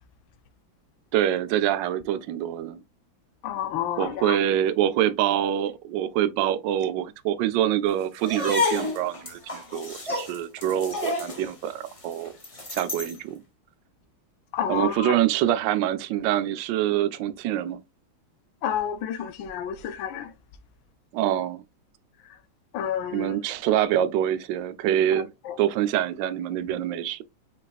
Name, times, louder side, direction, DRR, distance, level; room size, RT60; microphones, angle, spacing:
voice 1, 1.1-2.8 4.0-12.3 12.7-13.4 14.7-17.8 21.1-21.6 23.1-25.3 25.6-27.2, right 11 dB, 75° right, 1.1 m, -25 dB
voice 2, 3.4-4.4 14.5-15.1 18.6-20.3 22.7-23.4 25.5-25.6, left 9 dB, 75° left, 1.3 m, -30 dB
sound 1, 8.2-13.2, left 2 dB, 30° left, 0.6 m, -30 dB
5.4 x 4.0 x 2.4 m
omnidirectional pair, 2.3 m